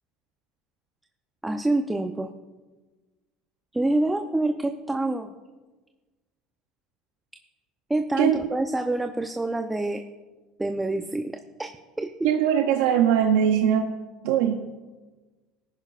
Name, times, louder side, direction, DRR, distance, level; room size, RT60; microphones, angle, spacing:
voice 1, 1.4-2.3 3.7-5.3 7.9-10.0 10.6-11.7 12.0-12.3, right 2 dB, 10° right, 5 dB, 0.8 m, -26 dB
voice 2, 12.2-13.9 14.2-14.6, right 9 dB, 75° right, 5 dB, 0.7 m, -21 dB
18.5 x 10.5 x 2.5 m, 1.3 s
hypercardioid pair, 80°, 0 cm